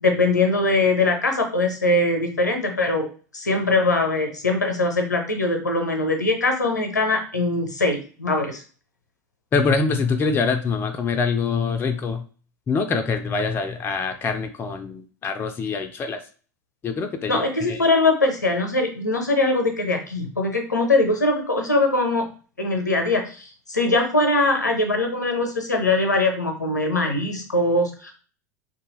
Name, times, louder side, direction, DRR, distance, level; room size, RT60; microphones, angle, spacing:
voice 1, 0.0-3.1 3.3-8.6 17.3-22.3 22.6-28.1, left 2 dB, 85° left, 3 dB, 0.6 m, -22 dB
voice 2, 9.5-12.2 12.7-16.2 16.8-17.4 17.7-17.8, left 4 dB, 25° left, 7 dB, 0.4 m, -24 dB
2.5 x 2.3 x 2.9 m, 0.39 s
figure-of-eight pair, 75°, 9 cm